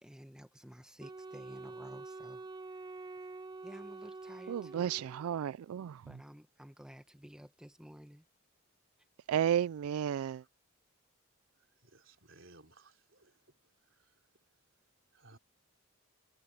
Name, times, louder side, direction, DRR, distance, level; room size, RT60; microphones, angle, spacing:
voice 1, 0.0-2.5 3.6-4.9 6.1-8.2, equal, 5° right, 1.1 m, -52 dB
Wind instrument woodwind instrument, 1.0-5.4, right 3 dB, 20° right, 0.5 m, -47 dB
voice 2, 4.5-6.0 9.3-10.4, right 9 dB, 85° right, 0.3 m, -32 dB
voice 3, 11.9-13.4 14.0-14.1 15.1-15.4, right 2 dB, 60° right, 3.7 m, -60 dB
head